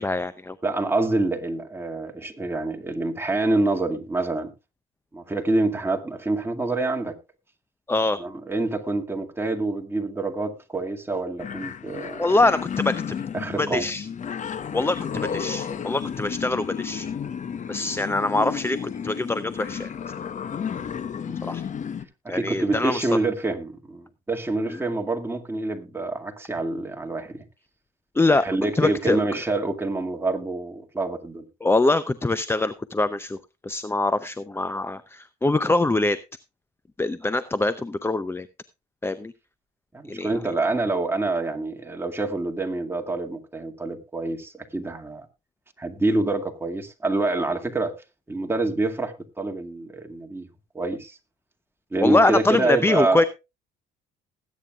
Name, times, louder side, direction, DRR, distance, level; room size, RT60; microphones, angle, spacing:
voice 1, 0.0-0.6 7.9-8.2 12.2-13.1 13.6-14.1 14.7-17.1 17.7-19.9 21.4-21.6 22.3-23.1 24.7-24.8 28.1-28.5 28.7-29.2 31.6-33.4 33.6-36.2 37.0-38.5 39.0-39.3 40.1-40.3 52.0-53.2, left 2 dB, 15° left, 0.6 m, -23 dB
voice 2, 0.6-4.5 5.1-7.2 8.2-12.3 13.3-13.8 21.3-21.4 22.2-27.4 28.4-31.4 39.9-45.3 45.8-47.9 48.3-50.5 50.7-51.2 51.9-53.2, right 2 dB, 10° right, 2.2 m, -26 dB
sound 1, 11.4-22.0, left 7 dB, 40° left, 1.0 m, -32 dB
20.0 x 9.3 x 2.4 m
supercardioid pair, 80°, 19 cm